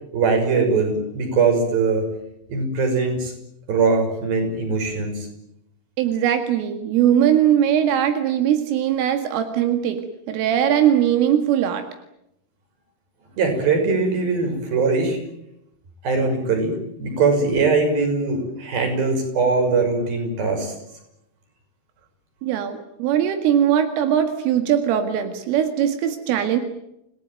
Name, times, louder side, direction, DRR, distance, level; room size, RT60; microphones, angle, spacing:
voice 1, 0.1-2.1 2.5-3.3 3.7-5.3 13.4-15.2 16.0-20.7, right 4 dB, 50° right, 5 dB, 7.7 m, -21 dB
voice 2, 6.0-10.0 10.3-11.9 22.4-26.6, right 10 dB, 85° right, 7 dB, 4.6 m, -20 dB
29.5 x 18.5 x 9.2 m, 0.81 s
omnidirectional pair, 5.6 m